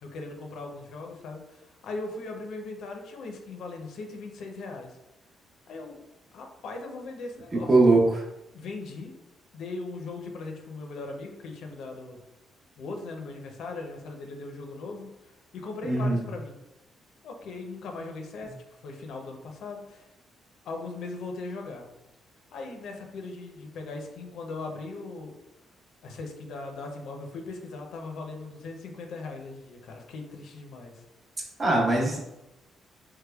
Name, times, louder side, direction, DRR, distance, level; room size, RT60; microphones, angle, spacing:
voice 1, 0.0-5.0 5.7-6.0 6.3-7.9 8.5-9.1 9.5-12.2 12.8-16.6 17.2-20.1 20.6-21.9 22.5-25.4 26.0-31.0, left 3 dB, 75° left, 2 dB, 0.5 m, -39 dB
voice 2, 7.5-8.2 15.8-16.2 31.6-32.2, right 2 dB, 40° right, -2 dB, 1.0 m, -21 dB
3.4 x 3.1 x 2.2 m, 0.93 s
cardioid pair, 90°, 0 cm